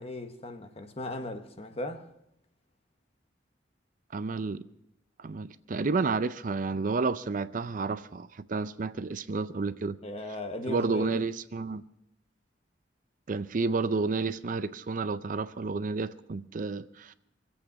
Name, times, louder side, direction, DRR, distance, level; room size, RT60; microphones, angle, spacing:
voice 1, 0.0-2.1 10.0-11.2, left 2 dB, 35° left, 1.1 m, -37 dB
voice 2, 4.1-4.6 5.2-10.0 10.7-11.8 13.3-17.1, right 4 dB, 45° right, 0.5 m, -31 dB
23.5 x 8.4 x 6.1 m
head